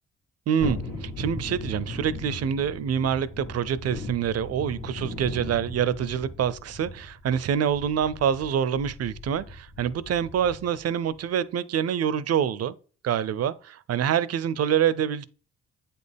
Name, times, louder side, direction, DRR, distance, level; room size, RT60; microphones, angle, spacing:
voice 1, 0.5-12.7 13.0-15.3, right 8 dB, 55° right, 0.6 m, -26 dB
Thunderstorm, 0.6-10.8 11.2-11.3, left 2 dB, 80° left, 1.9 m, -38 dB
8.0 x 4.3 x 3.5 m
supercardioid pair, 60°, 30 cm